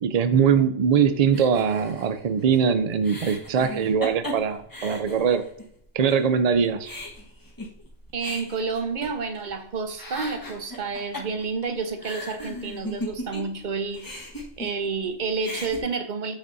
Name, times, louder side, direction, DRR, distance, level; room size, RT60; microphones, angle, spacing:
voice 1, 0.0-5.4 5.9-6.9, right 7 dB, 75° right, 10 dB, 0.3 m, -22 dB
sound 1, 1.3-5.7 6.1-6.2 6.5-9.6 9.9-13.6 13.9-15.1 15.3-15.8, equal, 15° left, 1.4 m, -37 dB
voice 2, 8.1-14.1 14.6-16.4, right 4 dB, 45° right, 8 dB, 0.7 m, -30 dB
8.0 x 6.8 x 2.6 m, 0.68 s
omnidirectional pair, 1.3 m